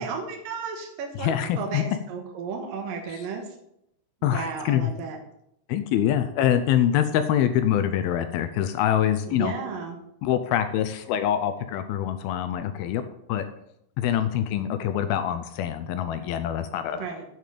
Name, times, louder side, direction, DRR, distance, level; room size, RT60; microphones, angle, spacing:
voice 1, 0.0-3.5 4.2-5.2 9.3-10.0 16.9-17.2, right 5 dB, 65° right, 2 dB, 2.6 m, -34 dB
voice 2, 1.2-1.8 3.1-3.3 4.2-4.9 5.7-9.6 10.2-13.0 13.3-13.5 14.0-17.1, left 10 dB, 80° left, 10 dB, 2.3 m, -25 dB
8.5 x 6.3 x 7.7 m, 0.79 s
omnidirectional pair, 4.8 m